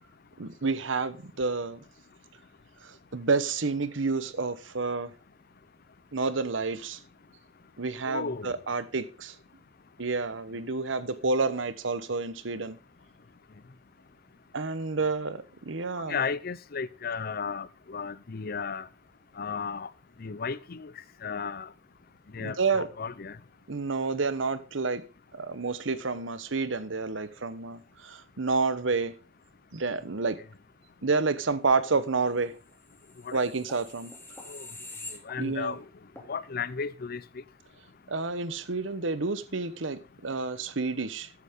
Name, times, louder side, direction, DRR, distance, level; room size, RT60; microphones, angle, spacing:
voice 1, 0.4-1.8 2.8-5.1 6.1-7.0 7.8-9.4 10.0-12.8 14.5-16.2 22.4-22.9 23.7-25.0 25.3-29.1 29.7-30.4 31.0-32.6 33.3-34.1 35.4-35.8 38.1-41.3, right 4 dB, 70° right, 1.0 m, -29 dB
voice 2, 8.1-8.5 16.1-18.9 19.4-19.9 20.2-20.9 21.2-21.7 22.3-23.4 33.2-33.4 34.5-34.7 35.2-35.8 36.3-37.4, left 5 dB, 50° left, 0.6 m, -34 dB
sound 1, 32.9-35.8 36.2-36.3, left 2 dB, 10° left, 2.7 m, -45 dB
13.5 x 8.2 x 3.7 m
head